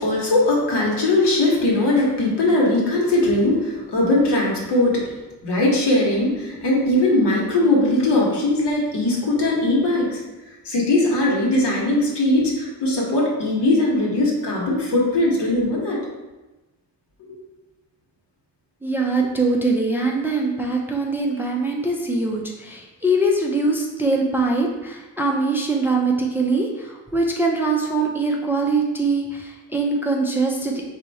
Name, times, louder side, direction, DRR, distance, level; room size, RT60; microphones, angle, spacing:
voice 1, 0.0-5.1 5.4-10.2 10.6-16.0 17.3-17.4, left 2 dB, 90° left, -3 dB, 1.4 m, -20 dB
voice 2, 18.8-30.7, right 2 dB, 5° right, 0 dB, 0.3 m, -22 dB
4.4 x 2.7 x 4.1 m, 1.1 s
wide cardioid pair, 150°, 40 cm